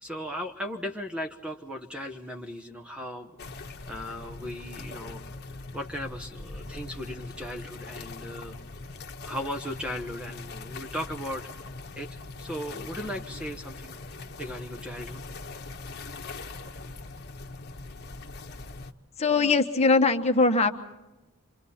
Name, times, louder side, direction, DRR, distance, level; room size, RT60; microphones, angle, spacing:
voice 1, 0.0-5.2 5.7-8.6 9.2-11.5 11.9-14.0 14.4-15.2, equal, 5° right, 4 dB, 1.0 m, -37 dB
sound 1, 3.4-18.9, left 3 dB, 45° left, 1.3 m, -41 dB
voice 2, 19.2-20.7, left 3 dB, 30° left, 5 dB, 1.3 m, -21 dB
27.5 x 25.5 x 4.3 m, 1.0 s
head